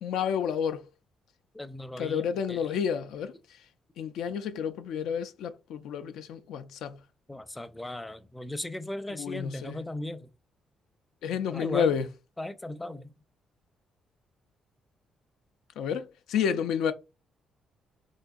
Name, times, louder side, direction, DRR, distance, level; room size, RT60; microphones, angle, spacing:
voice 1, 0.0-0.8 2.0-3.3 4.0-7.0 9.2-9.8 11.2-12.1 15.8-16.9, left 7 dB, 85° left, 0.4 m, -30 dB
voice 2, 1.5-2.7 4.3-4.4 7.3-10.3 11.5-12.0 12.4-13.1, left 1 dB, 10° left, 0.4 m, -37 dB
3.8 x 2.6 x 2.3 m
cardioid pair, 90°, 0 cm